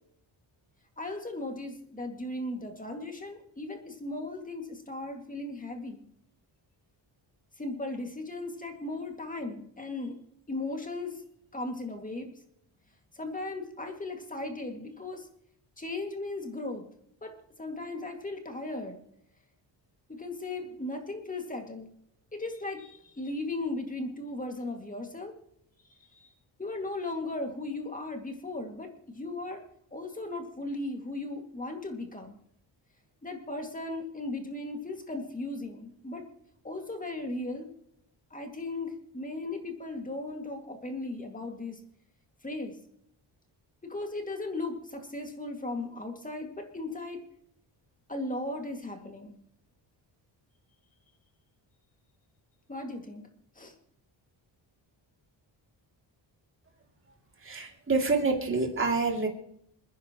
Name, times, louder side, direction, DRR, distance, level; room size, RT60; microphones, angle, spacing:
voice 1, 1.0-6.0 7.6-10.2 10.5-11.2 11.5-12.3 13.1-15.3 15.8-16.9 17.2-17.3 17.6-19.0 20.1-21.9 22.3-25.3 26.1-26.3 26.6-29.6 29.9-32.4 33.2-36.2 36.6-37.7 38.3-41.8 42.4-42.7 43.8-47.2 48.1-49.3 52.7-53.2 53.6-53.7, left 2 dB, 15° left, 4 dB, 2.2 m, -37 dB
voice 2, 57.4-59.3, right 3 dB, 25° right, 1 dB, 2.8 m, -27 dB
27.5 x 10.0 x 3.0 m, 0.70 s
cardioid pair, 125°, 46 cm